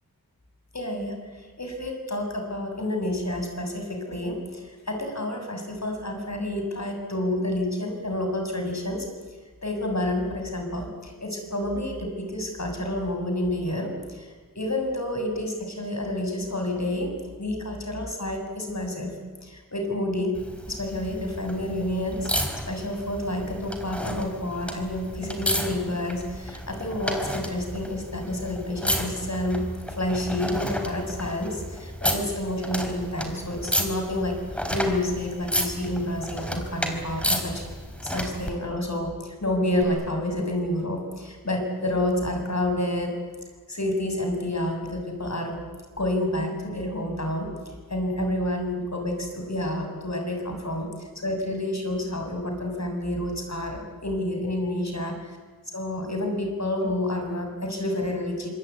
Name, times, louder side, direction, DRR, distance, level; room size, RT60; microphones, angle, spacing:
voice 1, 0.7-9.1 9.6-17.1 17.4-19.1 19.4-20.3 20.7-22.3 22.7-37.6 38.0-43.2 43.7-45.6 46.0-55.2 55.7-58.5, left 1 dB, 45° left, 4 dB, 7.1 m, -29 dB
sound 1, 20.3-38.5 39.8-39.9, equal, 5° left, 4.9 m, -32 dB
26.5 x 21.0 x 9.4 m, 1.4 s
cardioid pair, 40°, 36 cm